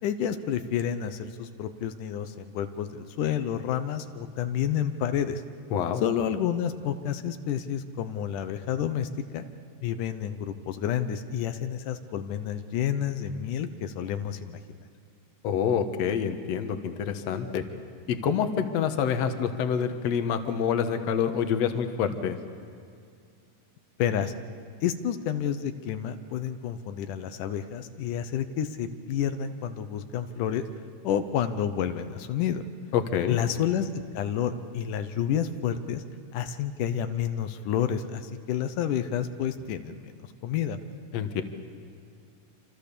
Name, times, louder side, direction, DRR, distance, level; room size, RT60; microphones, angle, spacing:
voice 1, 0.0-5.4 6.0-9.5 9.8-14.8 24.0-24.3 24.8-30.6 31.0-32.6 33.3-33.9 34.1-36.0 36.3-40.2 40.4-40.8, left 9 dB, 85° left, 9 dB, 2.5 m, -29 dB
voice 2, 5.7-6.0 15.4-17.7 18.1-22.4 32.9-33.4 41.1-41.4, left 7 dB, 65° left, 7 dB, 2.3 m, -27 dB
27.0 x 27.0 x 6.9 m, 2.3 s
omnidirectional pair, 3.5 m